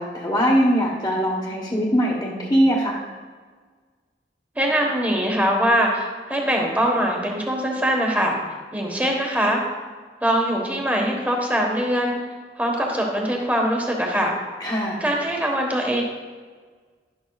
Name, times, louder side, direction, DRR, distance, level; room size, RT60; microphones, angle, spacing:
voice 1, 0.0-3.0 14.6-15.0, equal, 20° left, -7 dB, 1.1 m, -21 dB
voice 2, 4.5-8.4 8.7-9.6 10.2-12.2 12.6-14.4 15.0-16.0, equal, 10° right, 0 dB, 1.3 m, -22 dB
11.0 x 11.0 x 2.4 m, 1.5 s
head